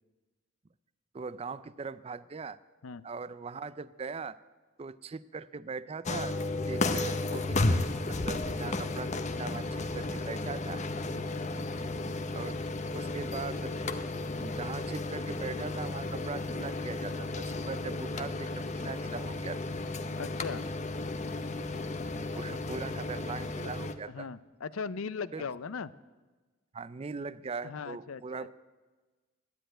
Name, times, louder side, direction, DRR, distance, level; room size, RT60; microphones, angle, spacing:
voice 1, 1.1-2.6 3.0-4.4 4.8-6.4 6.7-10.8 12.3-12.6 12.9-13.8 14.1-19.7 22.1-24.3 25.3-25.4 26.7-28.5, right 4 dB, 30° right, 17 dB, 0.4 m, -40 dB
sound 1, 6.0-23.9, left 2 dB, 35° left, 0.7 m, -33 dB
voice 2, 11.1-11.5 20.2-20.6 24.1-25.9 27.6-28.5, left 5 dB, 85° left, 17 dB, 0.5 m, -39 dB
12.0 x 10.0 x 9.0 m, 1.3 s
head